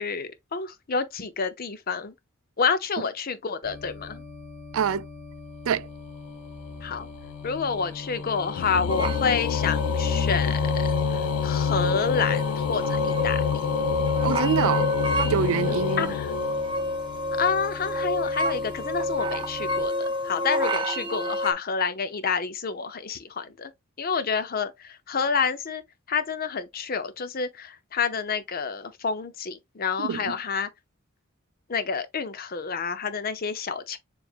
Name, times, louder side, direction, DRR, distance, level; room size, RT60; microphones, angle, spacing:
voice 1, 0.0-2.1 2.6-4.2 6.8-7.1 7.4-13.4 15.6-16.3 17.4-23.7 24.0-25.8 26.1-30.7 31.7-34.0, left 5 dB, 45° left, 0.7 m, -29 dB
sound 1, 3.6-19.8, left 3 dB, ahead, 1.3 m, -43 dB
voice 2, 4.7-5.1 5.7-5.9 14.2-14.9 15.2-16.1 30.0-30.3, right 7 dB, 75° right, 0.4 m, -25 dB
sound 2, 6.3-17.2, left 7 dB, 85° left, 0.4 m, -28 dB
sound 3, 8.9-21.5, left 1 dB, 25° right, 0.7 m, -29 dB
7.1 x 2.7 x 2.4 m
head